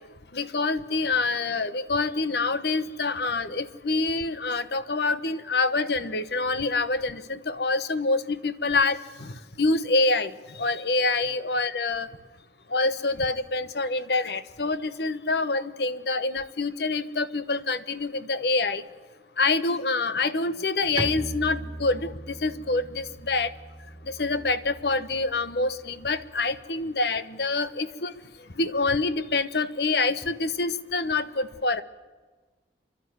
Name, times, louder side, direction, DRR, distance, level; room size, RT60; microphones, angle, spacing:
voice 1, 0.3-10.3 10.6-12.1 12.7-18.8 19.4-23.5 24.1-28.1 28.6-31.8, left 3 dB, 60° left, 13 dB, 1.0 m, -26 dB
Bowed string instrument, 21.0-26.6, right 1 dB, 25° right, 0.8 m, -39 dB
29.0 x 11.5 x 9.6 m, 1.3 s
head